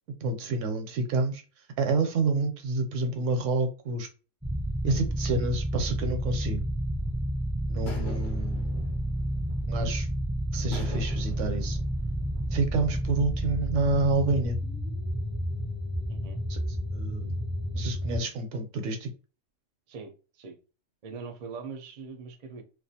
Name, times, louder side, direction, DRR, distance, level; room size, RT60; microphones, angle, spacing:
voice 1, 0.2-1.4 1.8-4.1 4.8-6.6 7.7-9.0 9.7-10.1 10.5-11.8 12.5-14.6 16.5-16.6 16.9-17.4 17.7-19.1, right 3 dB, 80° right, 0.9 m, -28 dB
sound 1, 4.4-18.2, equal, ahead, 0.5 m, -30 dB
sound 2, 7.0-7.3 7.9-10.0 10.7-12.5, left 2 dB, 50° left, 0.7 m, -46 dB
voice 2, 16.1-16.4 19.9-20.6 21.0-22.6, right 5 dB, 55° right, 0.5 m, -42 dB
2.4 x 2.2 x 2.7 m
omnidirectional pair, 1.3 m